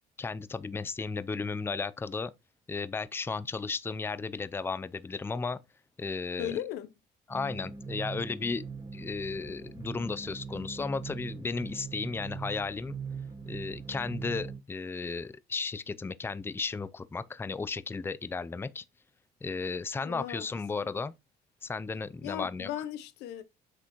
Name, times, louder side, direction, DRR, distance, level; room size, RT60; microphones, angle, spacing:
voice 1, 0.2-2.3 2.7-5.6 6.0-6.6 7.3-8.7 8.9-12.9 13.5-18.8 19.4-21.1 21.6-22.7, left 4 dB, 15° left, 0.5 m, -34 dB
voice 2, 6.4-6.9 20.0-20.5 22.2-23.4, left 11 dB, 90° left, 0.9 m, -37 dB
sound 1, 7.3-14.6, right 5 dB, 20° right, 2.4 m, -41 dB
8.1 x 6.1 x 3.0 m
cardioid pair, 110°, 17 cm